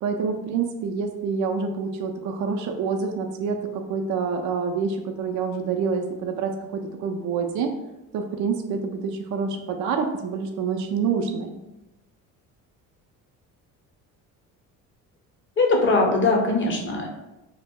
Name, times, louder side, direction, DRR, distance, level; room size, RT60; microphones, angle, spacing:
voice 1, 0.0-3.6 3.9-7.7 8.1-11.5, right 5 dB, 50° right, 4 dB, 0.4 m, -27 dB
voice 2, 15.6-17.1, left 2 dB, 30° left, 1 dB, 0.7 m, -21 dB
2.0 x 2.0 x 3.5 m, 0.95 s
supercardioid pair, 70°, 40 cm